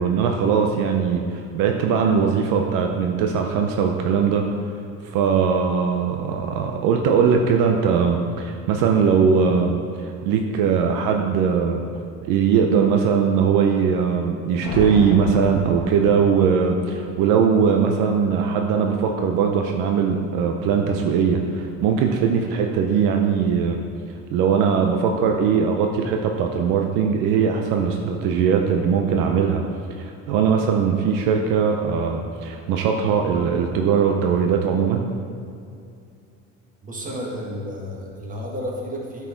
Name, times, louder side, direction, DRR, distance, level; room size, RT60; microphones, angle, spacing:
voice 1, 0.0-4.4 5.1-11.8 12.2-23.8 24.3-29.6 30.0-35.0, right 6 dB, 75° right, 3 dB, 0.7 m, -20 dB
sound 1, 14.6-16.6, left 2 dB, 90° left, 1.2 m, -31 dB
voice 2, 36.8-39.3, equal, 25° right, -2 dB, 1.8 m, -32 dB
9.0 x 4.6 x 4.5 m, 2.4 s
supercardioid pair, 95°, 32 cm